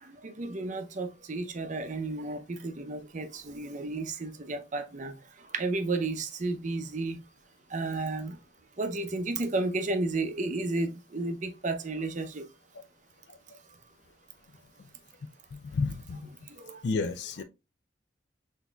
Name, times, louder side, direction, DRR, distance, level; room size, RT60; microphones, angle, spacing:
voice 1, 0.0-5.1 5.5-7.2 7.7-8.4 8.8-12.4 16.1-16.2 16.5-16.8, right 3 dB, 40° right, 0.6 m, -32 dB
voice 2, 15.5-16.2 16.8-17.4, left 4 dB, 60° left, 0.3 m, -31 dB
6.0 x 2.7 x 2.2 m
head